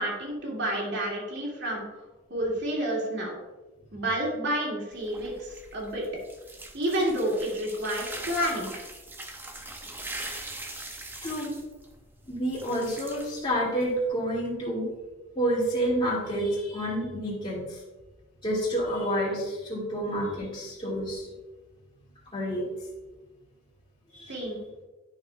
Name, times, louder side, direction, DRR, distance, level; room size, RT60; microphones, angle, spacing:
voice 1, 0.0-1.8 2.3-3.3 3.9-6.0 6.7-8.7 24.3-24.6, right 1 dB, 60° right, -3 dB, 2.4 m, -29 dB
sound 1, 4.9-14.1, right 2 dB, 10° right, 0.7 m, -42 dB
voice 2, 11.2-11.5 12.3-14.9 15.4-17.8 18.4-21.3 22.3-22.6 24.1-24.5, equal, 25° left, -7 dB, 2.3 m, -29 dB
10.5 x 6.3 x 2.3 m, 1.2 s
head